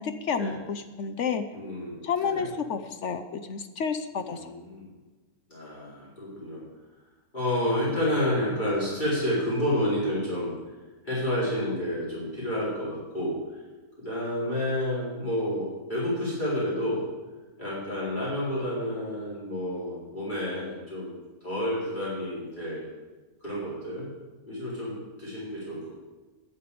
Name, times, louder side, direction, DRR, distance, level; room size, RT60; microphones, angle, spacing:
voice 1, 0.0-1.4 2.0-4.5, left 6 dB, 60° left, 9 dB, 0.9 m, -30 dB
voice 2, 1.5-2.4 4.1-4.9 5.5-6.6 7.3-10.5 11.0-13.6 14.0-17.1 17.6-22.9 23.4-24.1 24.5-25.9, left 1 dB, 30° left, -9 dB, 4.3 m, -30 dB
11.5 x 6.9 x 8.5 m, 1.2 s
omnidirectional pair, 1.6 m